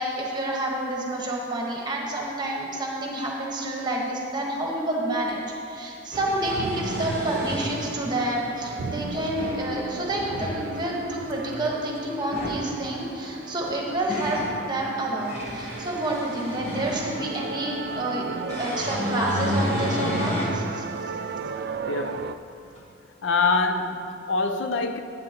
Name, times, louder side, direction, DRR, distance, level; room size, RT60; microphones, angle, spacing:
voice 1, 0.0-5.4 5.7-18.2 18.6-20.8, right 1 dB, 20° right, -2 dB, 1.2 m, -29 dB
sound 1, 5.3-5.4 6.2-7.9 8.9-9.7 10.1-10.6 12.2-12.7 13.6-14.5 15.1-17.3 18.5-20.6 21.1-21.2 22.8-22.9, left 1 dB, 35° left, 1.3 m, -31 dB
sound 2, 6.1-22.3, right 4 dB, 55° right, 0.3 m, -35 dB
voice 2, 21.9-22.4 23.2-25.0, left 3 dB, 75° left, 7 dB, 0.5 m, -25 dB
11.5 x 9.3 x 2.9 m, 2.6 s
head